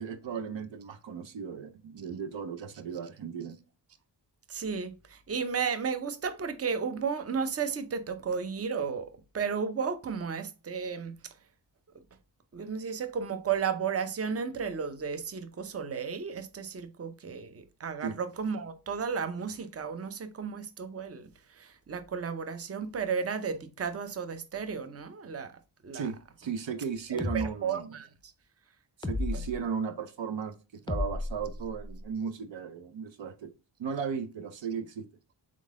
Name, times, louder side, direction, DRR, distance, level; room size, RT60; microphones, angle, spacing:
voice 1, 0.0-3.6 18.0-18.2 25.9-27.9 29.0-33.5 33.8-35.1, right 6 dB, 70° right, 0.6 m, -36 dB
voice 2, 4.5-11.2 12.5-26.1 27.1-28.3, right 6 dB, 30° right, 0.6 m, -34 dB
sound 1, 27.2-27.4 29.0-29.6 30.9-32.0, left 2 dB, 10° left, 0.4 m, -33 dB
3.8 x 3.7 x 3.6 m
cardioid pair, 50°, 46 cm